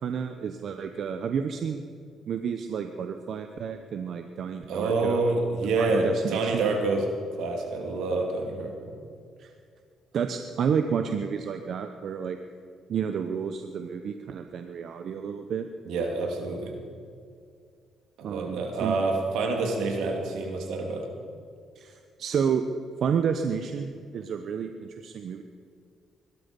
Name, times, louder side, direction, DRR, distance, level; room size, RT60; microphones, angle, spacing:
voice 1, 0.0-1.8 2.3-5.2 5.8-6.7 9.4-9.5 10.1-12.4 12.9-15.7 18.2-19.0 21.8-22.6 23.0-25.4, right 7 dB, 65° right, 7 dB, 0.9 m, -30 dB
voice 2, 4.7-7.1 7.4-8.9 15.8-16.8 18.2-21.1, right 3 dB, 85° right, 2 dB, 2.8 m, -27 dB
22.0 x 12.0 x 5.4 m, 2.2 s
cardioid pair, 90°, 0 cm